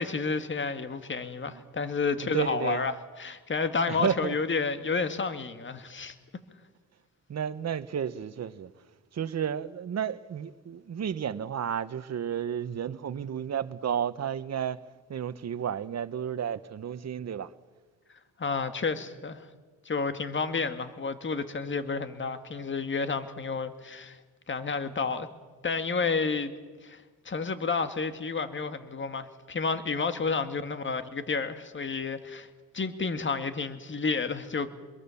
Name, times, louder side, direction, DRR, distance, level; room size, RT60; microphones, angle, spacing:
voice 1, 0.0-6.2 18.4-19.5 19.9-24.2 24.5-25.3 25.6-26.5 26.8-32.5 32.7-34.7, left 4 dB, 35° left, 1.7 m, -30 dB
voice 2, 2.2-2.9 3.9-4.3 7.3-8.7 9.1-14.8 15.1-17.5, right 8 dB, 50° right, 1.0 m, -32 dB
26.0 x 22.0 x 7.1 m
cardioid pair, 85°, 34 cm